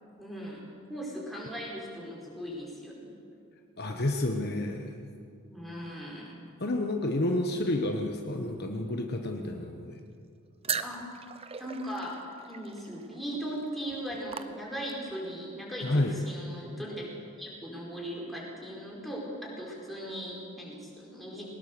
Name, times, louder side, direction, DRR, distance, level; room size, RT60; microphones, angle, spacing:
voice 1, 0.2-0.6 0.9-3.1 5.4-6.3 10.8-11.1 11.6-12.2 12.5-17.1 17.4-21.4, equal, ahead, -4 dB, 4.8 m, -38 dB
voice 2, 3.8-4.9 6.6-10.0 15.8-16.1, left 1 dB, 45° left, 3 dB, 1.2 m, -30 dB
sound 1, 10.6-15.1, right 7 dB, 25° right, 0.7 m, -39 dB
22.0 x 19.5 x 6.9 m, 2.4 s
head